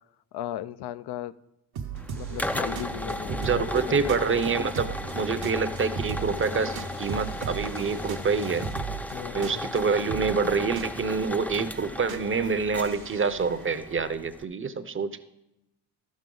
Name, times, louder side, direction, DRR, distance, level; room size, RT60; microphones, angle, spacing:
voice 1, 0.3-1.3 2.1-4.1 9.1-9.6, left 12 dB, 75° left, 15 dB, 0.5 m, -36 dB
sound 1, 1.8-14.0, right 7 dB, 65° right, 0.9 m, -38 dB
sound 2, 1.9-14.4, left 1 dB, 5° left, 0.3 m, -36 dB
voice 2, 3.3-8.7 9.3-15.2, right 5 dB, 30° right, 13 dB, 0.7 m, -27 dB
sound 3, 3.4-8.8, left 4 dB, 45° left, 0.9 m, -43 dB
12.0 x 7.3 x 3.8 m, 0.90 s
cardioid pair, 70°, 40 cm